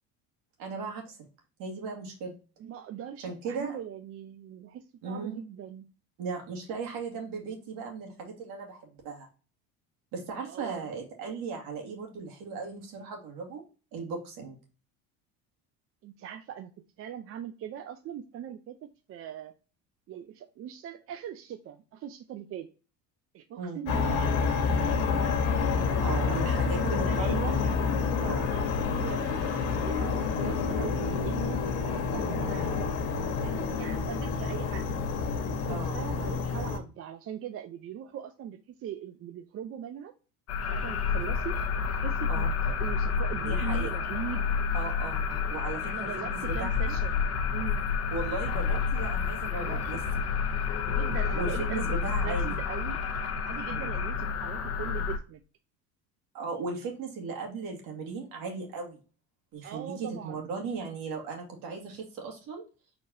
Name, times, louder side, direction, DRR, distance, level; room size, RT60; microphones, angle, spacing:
voice 1, 0.6-1.2 1.6-2.3 3.2-3.8 5.0-5.4 6.2-9.3 10.1-13.6 13.9-14.6 23.6-23.8 26.0-27.6 28.2-28.5 35.7-36.0 42.3-42.5 43.4-43.9 44.7-46.9 48.1-50.0 51.4-52.6 53.7-53.9 56.3-59.0 59.5-62.6, right 4 dB, 70° right, 1 dB, 2.2 m, -37 dB
voice 2, 2.6-5.9 10.5-10.9 16.0-16.7 17.0-19.5 20.1-22.7 23.3-24.4 24.8-25.4 25.7-27.4 28.5-32.8 33.4-34.9 35.5-40.1 40.7-41.6 41.9-44.5 45.8-47.8 49.5-49.8 50.9-51.8 52.2-53.0 53.5-55.4 59.6-60.5, right 9 dB, 40° right, 8 dB, 0.5 m, -41 dB
sound 1, 23.9-36.8, left 5 dB, 80° left, 1.5 m, -28 dB
sound 2, 40.5-55.2, left 6 dB, 45° left, 0.9 m, -29 dB
4.8 x 4.1 x 2.7 m, 0.34 s
cardioid pair, 120°, 35 cm